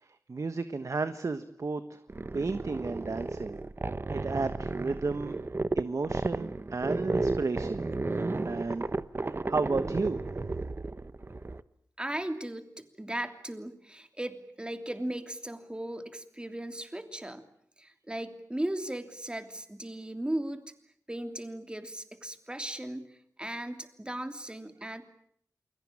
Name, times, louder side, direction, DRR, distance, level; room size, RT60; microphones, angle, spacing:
voice 1, 0.3-2.0 2.3-3.6 4.1-5.4 5.7-8.9 9.3-10.2, right 3 dB, 55° right, 10 dB, 1.4 m, -33 dB
sound 1, 2.1-11.6, right 2 dB, 35° right, 1.1 m, -33 dB
voice 2, 12.0-17.5 17.8-20.6 21.1-23.1 23.4-25.1, right 1 dB, 15° right, 8 dB, 3.0 m, -37 dB
28.5 x 21.5 x 8.8 m, 0.66 s
wide cardioid pair, 70°, 6 cm